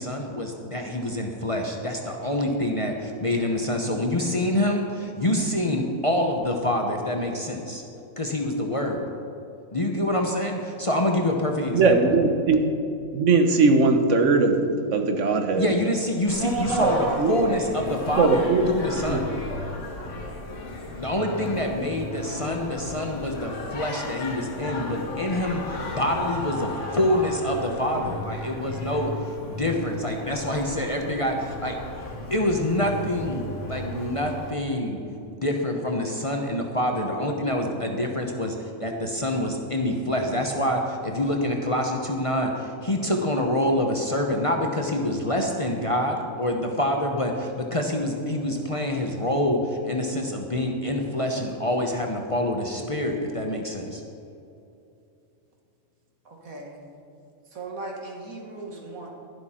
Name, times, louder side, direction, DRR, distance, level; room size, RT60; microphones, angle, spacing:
voice 1, 0.0-7.8 8.2-9.0 9.7-12.0 15.6-19.3 21.0-25.6 26.0-31.8 32.3-35.0 35.3-54.0, left 1 dB, 30° left, 1 dB, 0.8 m, -26 dB
voice 2, 11.7-12.7 13.1-14.5 14.9-15.7 16.8-17.3 18.2-18.7 19.0-19.2 19.5-19.7, right 4 dB, 60° right, 6 dB, 1.3 m, -20 dB
Singing, 16.3-34.5, left 2 dB, 60° left, 1.7 m, -35 dB
voice 3, 16.3-17.2 56.3-56.8 57.5-59.1, right 3 dB, 90° right, 0 dB, 2.1 m, -32 dB
11.5 x 11.5 x 4.3 m, 2.7 s
omnidirectional pair, 1.4 m